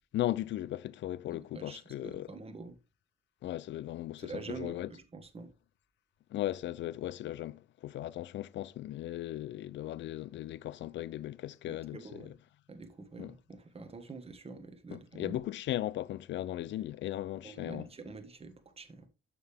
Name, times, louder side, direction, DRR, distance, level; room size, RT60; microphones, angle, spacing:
voice 1, 0.1-2.3 3.4-4.9 6.3-12.4 13.2-13.3 14.9-17.9, left 13 dB, 65° left, 0.4 m, -37 dB
voice 2, 1.3-2.8 4.2-5.5 11.7-12.3 12.7-15.4 17.4-19.1, right 4 dB, 30° right, 1.5 m, -46 dB
6.7 x 6.7 x 3.4 m
cardioid pair, 90°, 20 cm